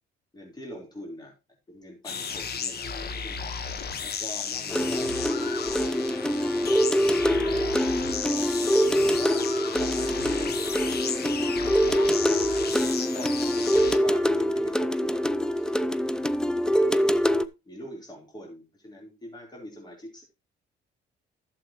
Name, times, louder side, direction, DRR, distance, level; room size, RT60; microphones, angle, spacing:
voice 1, 0.3-1.3 1.7-3.5 4.0-6.7 7.2-8.5 9.0-11.6 11.9-15.2 15.5-15.8 16.1-16.4 16.8-20.2, equal, 20° left, -1 dB, 4.1 m, -43 dB
sound 1, 2.0-14.0, left 6 dB, 55° left, 1.3 m, -34 dB
sound 2, 4.7-17.5, equal, 5° left, 0.5 m, -24 dB
12.0 x 7.4 x 3.1 m, 0.27 s
cardioid pair, 90°, 20 cm